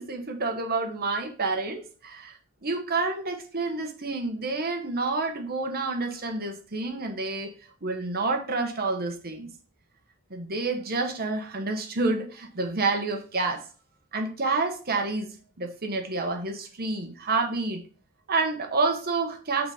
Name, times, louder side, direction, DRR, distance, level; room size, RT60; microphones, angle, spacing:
voice 1, 0.0-2.3 2.6-7.5 7.8-9.5 10.3-13.6 14.1-17.8 18.3-19.7, right 3 dB, 45° right, 4 dB, 1.2 m, -29 dB
5.9 x 4.2 x 5.0 m, 0.39 s
head